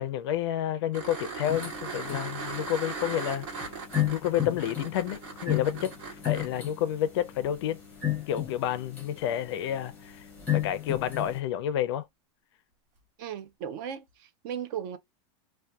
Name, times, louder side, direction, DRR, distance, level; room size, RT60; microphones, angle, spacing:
voice 1, 0.0-3.7 4.1-7.8 8.3-10.3 10.5-12.1, left 11 dB, 55° left, 0.4 m, -30 dB
sound 1, 0.9-6.5 9.2-9.3, right 4 dB, 70° right, 1.3 m, -38 dB
sound 2, 1.4-11.4, left 12 dB, 10° left, 0.7 m, -34 dB
voice 2, 13.2-15.0, right 8 dB, 40° right, 0.4 m, -36 dB
2.6 x 2.2 x 2.2 m
supercardioid pair, 170°, 17 cm